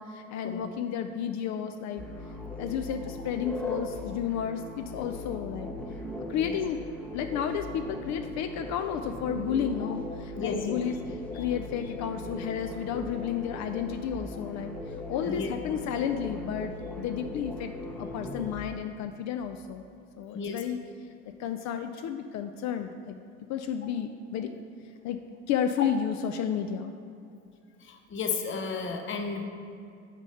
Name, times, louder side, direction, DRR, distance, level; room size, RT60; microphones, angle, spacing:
voice 1, 0.0-2.0 2.6-5.7 6.3-6.8 7.1-17.7 18.0-19.9 20.2-20.8 21.4-23.2 23.5-24.5 25.0-25.2 25.5-26.9, left 8 dB, 50° left, 7 dB, 0.4 m, -32 dB
sound 1, 2.0-18.6, left 2 dB, 5° left, 0.7 m, -39 dB
voice 2, 10.3-10.8 15.3-15.5 20.3-20.6 27.8-29.5, left 5 dB, 30° left, 4 dB, 0.8 m, -33 dB
5.0 x 4.9 x 5.6 m, 2.5 s
hypercardioid pair, 65°, 38 cm